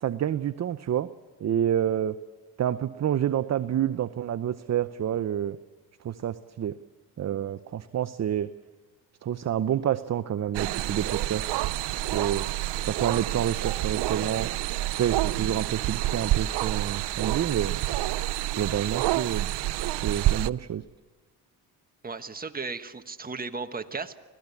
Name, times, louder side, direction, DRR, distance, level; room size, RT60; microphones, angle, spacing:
voice 1, 0.0-1.1 1.4-2.2 2.6-5.6 6.0-6.7 7.2-8.5 9.2-11.4 12.1-12.5 12.8-14.5 15.0-17.8 18.5-19.5 19.9-20.8, right 10 dB, 40° right, 13 dB, 0.7 m, -28 dB
sound 1, 10.5-20.5, right 15 dB, 80° right, 0.7 m, -28 dB
voice 2, 22.0-24.2, right 4 dB, 20° right, 7 dB, 1.4 m, -35 dB
25.5 x 17.0 x 8.4 m, 1.3 s
cardioid pair, 90°, 40 cm